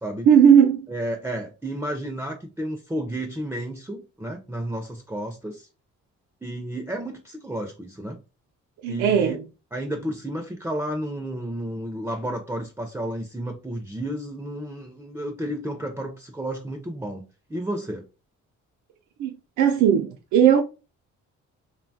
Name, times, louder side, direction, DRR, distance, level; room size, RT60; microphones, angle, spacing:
voice 1, 0.3-0.8 8.8-9.4 19.2-20.6, right 8 dB, 75° right, 0.5 m, -17 dB
voice 2, 0.9-5.7 6.4-8.2 8.9-9.4 9.7-17.2 17.5-18.0, right 1 dB, 10° right, 0.4 m, -32 dB
3.0 x 2.2 x 2.6 m
cardioid pair, 90°, 30 cm